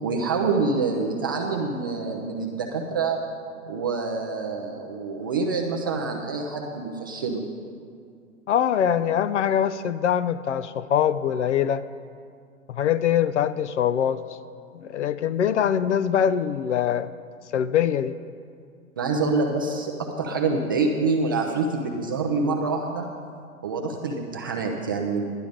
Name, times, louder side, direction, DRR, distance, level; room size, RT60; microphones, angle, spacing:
voice 1, 0.0-3.2 3.7-7.4 19.0-23.0 23.6-25.2, right 4 dB, 15° right, 1 dB, 0.3 m, -26 dB
voice 2, 8.5-11.8 12.7-14.2 14.7-17.1 17.5-18.1, left 9 dB, 55° left, 13 dB, 0.6 m, -23 dB
11.0 x 11.0 x 5.0 m, 2.3 s
figure-of-eight pair, 120°, 42 cm